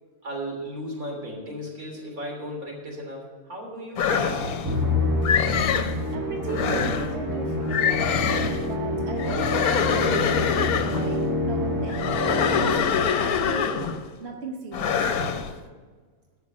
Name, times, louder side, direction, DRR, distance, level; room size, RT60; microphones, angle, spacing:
voice 1, 0.2-4.7, equal, 75° right, -1 dB, 3.6 m, -35 dB
sound 1, 4.0-4.8 5.2-6.0 6.5-7.1 7.7-8.7 9.2-11.1 11.9-14.1 14.7-15.5, left 7 dB, 85° left, 1.3 m, -25 dB
Musical instrument, 4.7-13.1, left 1 dB, 15° right, 1.4 m, -27 dB
voice 2, 5.8-8.2 8.7-12.0 12.5-13.9 14.2-15.1, right 2 dB, 50° right, 2 dB, 1.2 m, -36 dB
14.0 x 5.3 x 7.3 m, 1.4 s
omnidirectional pair, 1.5 m